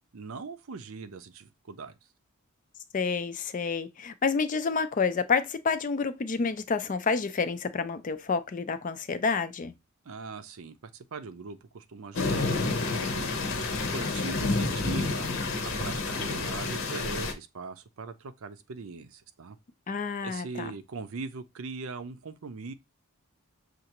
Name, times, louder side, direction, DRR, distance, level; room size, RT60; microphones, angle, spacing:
voice 1, 0.1-2.0 10.0-15.3 15.6-19.6 20.2-22.7, right 4 dB, 65° right, 0.5 m, -41 dB
voice 2, 2.9-9.7 19.9-20.7, left 5 dB, 35° left, 0.4 m, -29 dB
sound 1, 12.1-17.3, left 3 dB, 60° left, 0.8 m, -29 dB
6.5 x 2.4 x 2.9 m
head